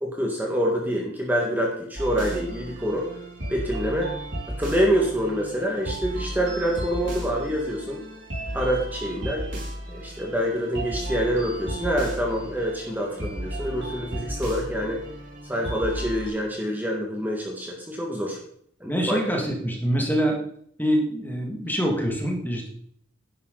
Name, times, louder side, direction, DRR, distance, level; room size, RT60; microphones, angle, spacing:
voice 1, 0.0-3.1 3.5-4.1 4.5-8.0 8.5-9.4 9.9-15.0 15.5-18.4 18.8-19.4, equal, 10° right, -1 dB, 1.7 m, -26 dB
sound 1, 2.0-16.3, equal, 70° right, 5.0 m, -34 dB
voice 2, 18.8-20.4 20.8-22.7, equal, 10° left, 1 dB, 2.1 m, -25 dB
11.0 x 10.5 x 4.0 m, 0.65 s
head